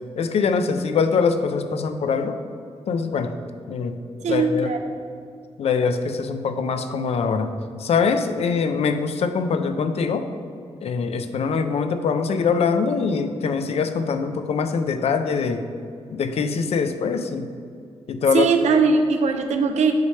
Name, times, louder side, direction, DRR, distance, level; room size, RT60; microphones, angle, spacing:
voice 1, 0.2-2.4 2.9-3.3 3.7-4.0 4.3-4.7 5.6-7.5 7.8-10.3 10.8-15.7 16.1-17.5 18.1-18.5, left 5 dB, 65° left, 8 dB, 0.5 m, -23 dB
voice 2, 4.2-4.8 18.3-19.9, right 4 dB, 80° right, 5 dB, 0.5 m, -20 dB
8.4 x 3.2 x 5.5 m, 2.3 s
wide cardioid pair, 175°, 12 cm